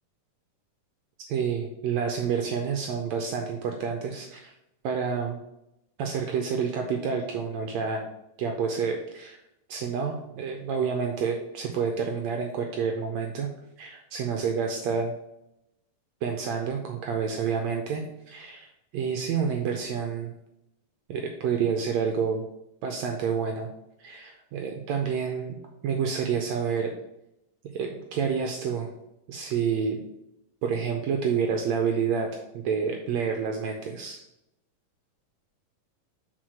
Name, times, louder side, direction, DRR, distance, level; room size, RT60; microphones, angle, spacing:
voice 1, 1.3-4.5 4.8-5.4 6.0-8.0 8.4-9.4 9.7-13.5 13.8-15.1 16.2-18.7 18.9-20.3 21.1-22.4 22.8-23.7 24.0-25.5 25.8-26.9 27.7-28.9 29.3-30.0 30.6-34.2, right 6 dB, 85° right, 3 dB, 1.5 m, -28 dB
6.2 x 4.0 x 6.3 m, 0.86 s
omnidirectional pair, 3.9 m